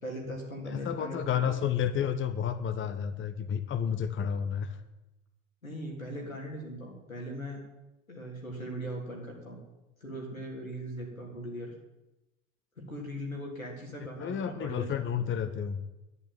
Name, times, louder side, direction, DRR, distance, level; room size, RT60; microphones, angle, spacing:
voice 1, 0.0-1.6 5.6-7.6 8.1-9.6 10.0-11.7 12.8-15.0, equal, 90° left, -1 dB, 3.7 m, -39 dB
voice 2, 0.7-4.8 14.2-15.8, left 8 dB, 30° left, 10 dB, 1.2 m, -31 dB
11.5 x 11.0 x 9.2 m, 0.99 s
figure-of-eight pair, 70°, 40 cm